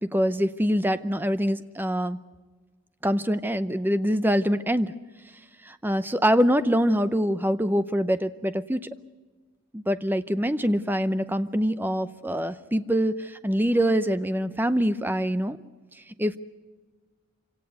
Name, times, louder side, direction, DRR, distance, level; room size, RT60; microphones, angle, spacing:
voice 1, 0.0-2.2 3.0-4.9 5.6-8.9 9.7-15.6 16.2-16.4, equal, 10° right, 12 dB, 0.6 m, -24 dB
26.5 x 17.5 x 8.1 m, 1.4 s
head